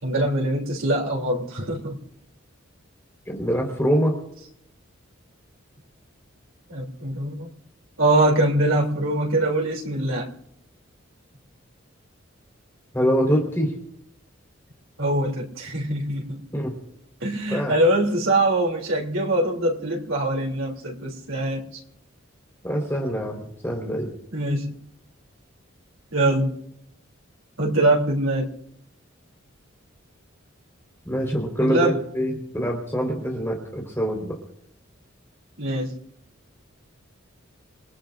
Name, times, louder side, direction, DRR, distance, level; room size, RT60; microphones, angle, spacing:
voice 1, 0.0-2.0 6.7-7.5 8.0-10.3 15.0-16.4 17.2-21.7 24.3-24.7 26.1-26.5 27.6-28.5 31.6-32.0 35.6-35.9, right 1 dB, 85° right, -1 dB, 3.1 m, -23 dB
voice 2, 3.3-4.1 12.9-13.7 16.5-16.7 17.5-17.8 22.6-24.1 31.0-34.4, equal, 15° left, 0 dB, 4.2 m, -24 dB
28.0 x 19.5 x 2.6 m, 0.75 s
head